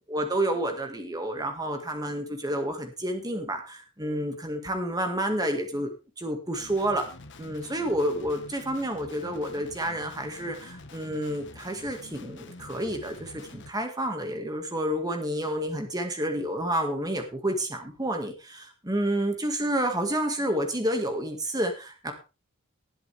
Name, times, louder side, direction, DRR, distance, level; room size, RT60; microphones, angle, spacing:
voice 1, 0.1-5.9 6.2-7.1 7.4-22.1, right 1 dB, 15° right, 5 dB, 2.0 m, -29 dB
Guitar, 6.5-13.7, left 2 dB, 55° left, 1.4 m, -47 dB
19.0 x 8.0 x 3.5 m, 0.32 s
head